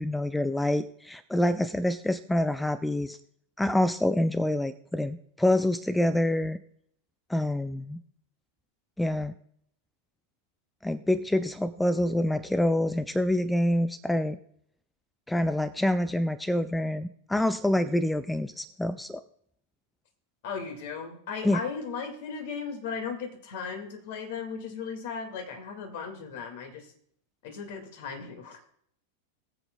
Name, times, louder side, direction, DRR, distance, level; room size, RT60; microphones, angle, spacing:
voice 1, 0.0-3.2 3.6-6.6 7.3-8.0 9.0-9.3 10.8-14.4 15.3-19.2 21.4-21.6, left 1 dB, 5° left, 13 dB, 0.4 m, -26 dB
voice 2, 20.4-26.9 27.4-28.6, left 5 dB, 50° left, 4 dB, 1.9 m, -36 dB
21.5 x 7.8 x 2.2 m, 0.66 s
figure-of-eight pair, 90°, 0 cm